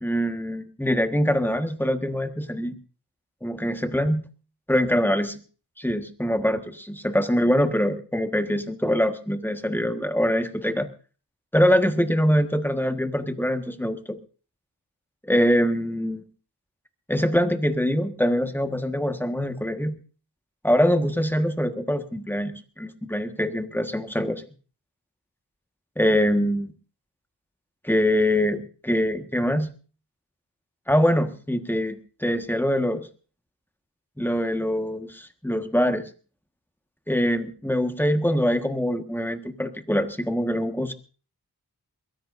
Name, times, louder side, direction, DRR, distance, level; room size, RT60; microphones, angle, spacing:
voice 1, 0.0-2.7 3.4-4.2 4.7-5.4 5.8-10.9 11.5-14.0 15.2-16.2 17.1-20.0 20.6-24.4 26.0-26.7 27.8-29.7 30.9-32.0 32.2-33.1 34.2-36.0 37.1-40.9, equal, 5° left, 7 dB, 1.6 m, -23 dB
22.0 x 16.0 x 2.7 m, 0.37 s
wide cardioid pair, 40°, 40 cm